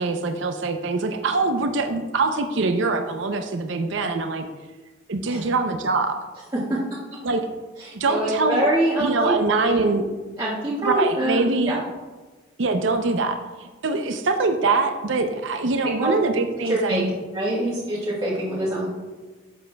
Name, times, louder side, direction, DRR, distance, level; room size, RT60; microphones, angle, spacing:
voice 1, 0.0-4.4 5.1-6.2 7.2-7.4 7.9-8.7 9.0-10.1 10.8-11.8 12.6-17.1, right 3 dB, 70° right, 6 dB, 0.6 m, -23 dB
voice 2, 7.8-9.8 10.4-11.8 16.0-16.1 16.6-17.0 17.3-18.9, right 1 dB, 20° right, -11 dB, 1.6 m, -25 dB
11.5 x 7.3 x 2.2 m, 1.3 s
head